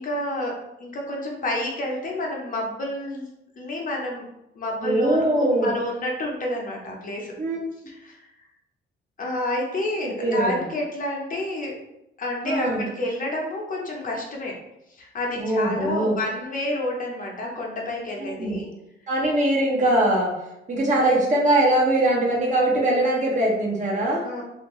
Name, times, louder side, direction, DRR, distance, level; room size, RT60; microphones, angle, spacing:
voice 1, 0.0-3.3 3.6-4.2 4.6-7.3 7.9-8.3 9.2-11.7 12.2-14.5 14.9-18.7 24.2-24.4, left 1 dB, 45° left, -1 dB, 0.8 m, -29 dB
voice 2, 4.8-5.7 7.4-7.6 10.0-10.6 12.4-12.9 15.4-16.2 18.2-18.6 19.1-20.3 20.7-24.2, right 1 dB, 40° right, -4 dB, 1.1 m, -22 dB
2.7 x 2.5 x 3.0 m, 0.87 s
cardioid pair, 90°, 20 cm